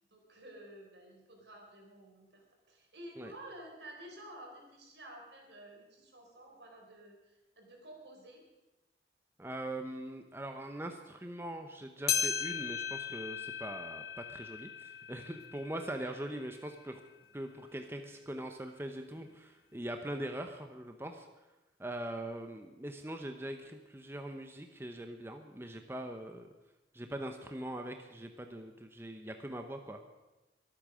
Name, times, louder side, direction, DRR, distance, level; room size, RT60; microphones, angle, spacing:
voice 1, 0.1-8.4 16.0-16.2, right 1 dB, 75° right, 1 dB, 4.3 m, -52 dB
voice 2, 9.4-17.0 17.3-21.3 21.8-26.5 26.9-30.0, right 1 dB, 15° right, 5 dB, 0.8 m, -42 dB
sound 1, 12.1-16.7 17.2-17.3 18.1-18.2 19.2-19.3, left 7 dB, 60° left, 1.6 m, -37 dB
23.0 x 8.7 x 6.3 m, 1.1 s
head